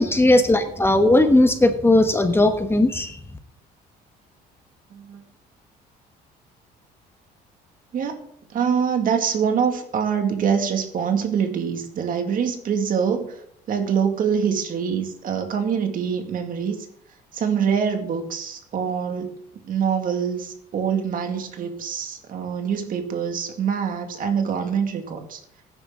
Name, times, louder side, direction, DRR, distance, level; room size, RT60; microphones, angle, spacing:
voice 1, 0.0-3.2, left 1 dB, 15° left, 7 dB, 1.2 m, -17 dB
voice 2, 4.9-5.2 7.9-8.3 8.5-13.4 13.7-16.8 17.3-19.3 19.7-25.4, right 7 dB, 55° right, 5 dB, 2.2 m, -24 dB
16.0 x 9.7 x 3.8 m, 0.66 s
cardioid pair, 110°, 17 cm